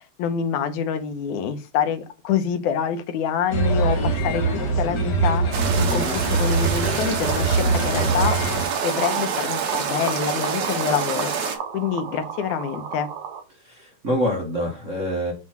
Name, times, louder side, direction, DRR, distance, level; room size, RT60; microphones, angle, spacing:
voice 1, 0.0-13.1, left 7 dB, 75° left, 9 dB, 2.2 m, -26 dB
sound 1, 3.5-8.6, right 3 dB, 50° left, 1.4 m, -23 dB
sound 2, 5.5-11.6, right 6 dB, 65° right, 2.7 m, -27 dB
sound 3, 7.4-13.4, right 8 dB, 90° right, 3.0 m, -32 dB
voice 2, 13.5-15.3, equal, 45° right, -1 dB, 1.0 m, -26 dB
7.4 x 3.1 x 5.9 m, 0.31 s
omnidirectional pair, 3.7 m